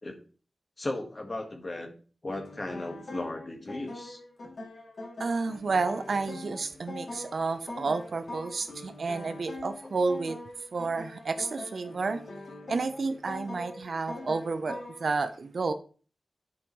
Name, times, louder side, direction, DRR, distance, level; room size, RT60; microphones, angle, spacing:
voice 1, 0.8-1.9 2.2-4.2 9.8-9.9, left 2 dB, 35° left, 1.6 m, -36 dB
sound 1, 2.3-15.1, left 2 dB, 65° left, 2.7 m, -43 dB
voice 2, 5.2-10.4 10.7-12.2 12.7-15.7, right 4 dB, 65° right, 0.7 m, -31 dB
10.5 x 5.2 x 3.1 m
wide cardioid pair, 95°, 0 cm